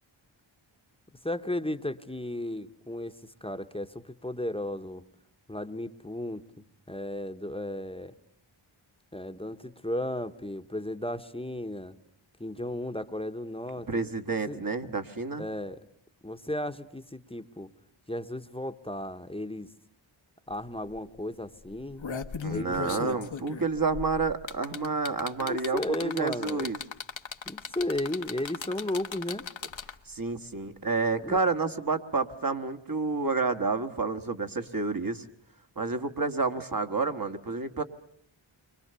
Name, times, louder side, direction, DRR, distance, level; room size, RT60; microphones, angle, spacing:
voice 1, 1.2-5.0 5.5-8.1 9.1-12.0 12.4-14.0 14.5-14.6 15.4-15.8 16.2-17.7 18.1-19.7 20.5-22.0 22.5-23.2 24.8-24.9 25.4-26.7 27.5-29.5 31.2-31.4, left 1 dB, 10° left, 9 dB, 1.1 m, -34 dB
voice 2, 13.9-15.4 22.4-26.8 30.1-35.2 35.8-37.8, right 4 dB, 45° right, 7 dB, 1.6 m, -29 dB
sound 1, 20.5-20.6 20.9-21.2 21.7-30.1 31.3-31.4, left 6 dB, 70° left, 1.2 m, -37 dB
30.0 x 24.5 x 6.9 m, 0.65 s
wide cardioid pair, 55°, 47 cm